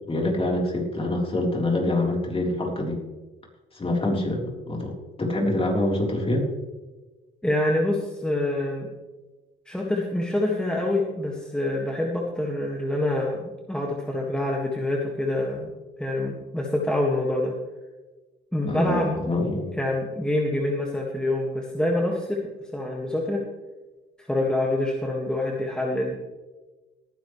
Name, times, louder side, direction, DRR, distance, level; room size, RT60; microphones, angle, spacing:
voice 1, 0.1-3.0 3.7-6.5 18.6-19.8, left 1 dB, 30° left, -1 dB, 3.8 m, -25 dB
voice 2, 7.4-8.9 9.7-13.4 13.7-15.7 16.0-17.5 18.5-19.1 19.8-22.4 22.7-23.4 24.2-26.2, left 1 dB, 5° left, -1 dB, 1.8 m, -26 dB
18.0 x 10.5 x 3.2 m, 1.2 s
cardioid pair, 90°, 20 cm